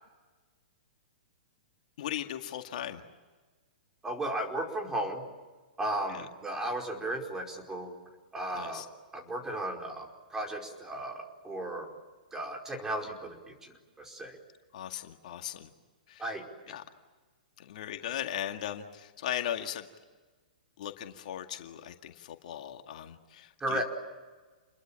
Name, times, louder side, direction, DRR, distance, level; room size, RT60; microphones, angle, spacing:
voice 1, 2.0-3.0 6.1-6.3 8.5-8.9 14.7-15.7 16.1-16.4 16.7-16.8 17.6-19.9 20.8-23.8, left 11 dB, 60° left, 5 dB, 2.0 m, -38 dB
voice 2, 4.0-5.2 5.8-7.9 8.3-8.8 9.1-11.9 12.3-13.7 14.0-14.4 16.2-16.5 23.6-23.8, right 1 dB, 10° right, 1 dB, 4.9 m, -35 dB
29.0 x 22.0 x 8.8 m, 1.3 s
hypercardioid pair, 120°, 5 cm